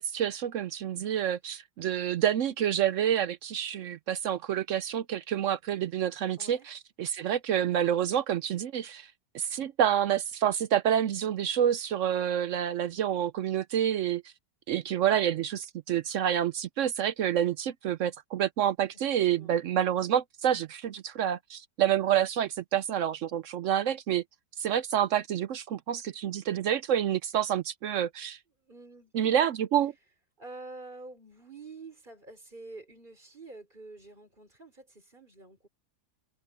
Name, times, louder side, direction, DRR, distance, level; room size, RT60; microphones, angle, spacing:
voice 1, 0.0-9.1 9.3-14.2 14.7-24.2 24.6-28.4 29.1-29.9, right 10 dB, 70° right, 0.7 m, -28 dB
voice 2, 6.4-6.7 18.9-19.5 28.6-29.1 30.4-35.7, right 3 dB, 30° right, 4.1 m, -48 dB
open air
omnidirectional pair, 1.8 m